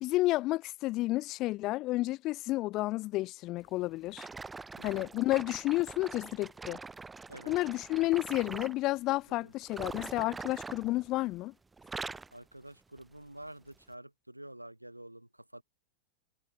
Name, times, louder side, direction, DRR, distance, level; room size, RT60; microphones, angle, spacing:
voice 1, 0.0-4.3 4.8-6.8 7.5-11.5, left 18 dB, 40° left, 0.3 m, -31 dB
sound 1, 4.1-8.8 9.6-11.4 11.7-12.4 13.0-13.2 13.8-13.9, right 4 dB, 10° right, 0.7 m, -44 dB
voice 2, 12.3-15.6, right 1 dB, 85° right, 1.9 m, -49 dB
figure-of-eight pair, 90°, 0 cm